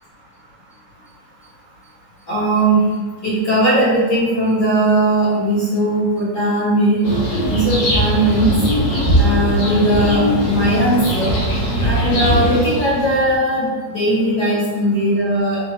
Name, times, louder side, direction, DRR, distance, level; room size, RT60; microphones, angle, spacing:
voice 1, 2.3-2.8 3.2-7.0 7.5-8.5 9.2-11.3 11.8-15.6, right 1 dB, 45° left, -12 dB, 1.4 m, -18 dB
sound 1, 7.0-13.3, right 1 dB, 75° left, 1.3 m, -19 dB
6.5 x 2.5 x 2.8 m, 1.4 s
omnidirectional pair, 4.1 m